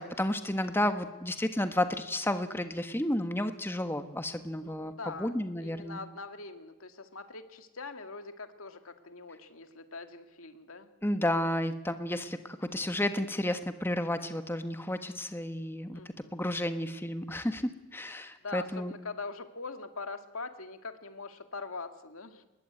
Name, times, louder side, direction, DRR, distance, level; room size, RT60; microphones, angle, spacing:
voice 1, 0.0-6.0 11.0-16.0 16.3-18.9, left 1 dB, 10° left, 8 dB, 1.3 m, -32 dB
voice 2, 4.6-10.9 15.9-16.4 18.4-22.4, left 3 dB, 80° left, 8 dB, 2.1 m, -43 dB
24.0 x 21.0 x 9.5 m, 1.1 s
head